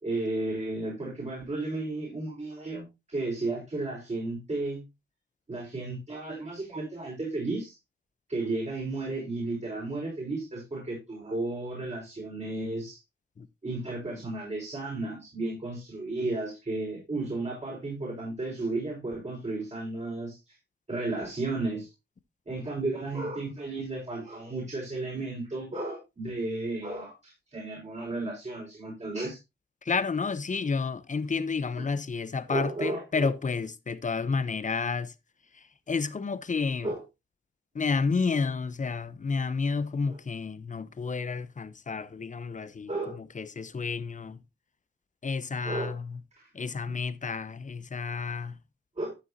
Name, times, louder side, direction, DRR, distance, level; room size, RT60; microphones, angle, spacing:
voice 1, 0.0-4.8 5.5-7.8 8.3-13.0 13.6-20.5 20.9-21.9 22.5-29.4 32.5-33.3 36.8-37.0 42.9-43.2 45.6-45.9 46.4-46.5 46.9-47.0 49.0-49.2, right 2 dB, 35° right, 5.2 m, -33 dB
voice 2, 29.8-35.1 35.5-36.9 37.7-42.9 43.3-44.4 45.2-46.2 46.5-48.6, left 4 dB, 40° left, 0.9 m, -30 dB
12.5 x 6.9 x 2.8 m
cardioid pair, 70°, 20 cm